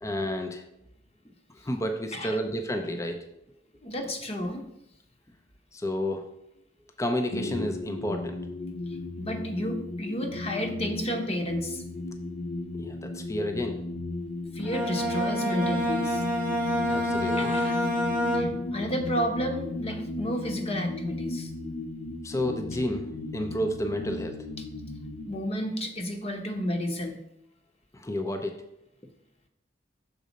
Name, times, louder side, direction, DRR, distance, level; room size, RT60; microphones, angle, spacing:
voice 1, 0.0-0.6 1.3-3.4 5.7-6.2 7.0-8.4 12.8-13.8 16.9-17.5 22.2-24.4 27.9-28.5, left 1 dB, 15° left, 5 dB, 0.5 m, -31 dB
voice 2, 3.8-4.6 9.2-11.8 14.5-16.2 17.4-17.8 18.3-21.5 25.3-27.2, equal, 35° left, 5 dB, 0.9 m, -31 dB
sound 1, 7.3-25.3, left 2 dB, 60° left, 0.6 m, -36 dB
Bowed string instrument, 14.6-18.9, left 1 dB, 10° right, 1.0 m, -28 dB
6.5 x 4.1 x 5.1 m, 0.80 s
head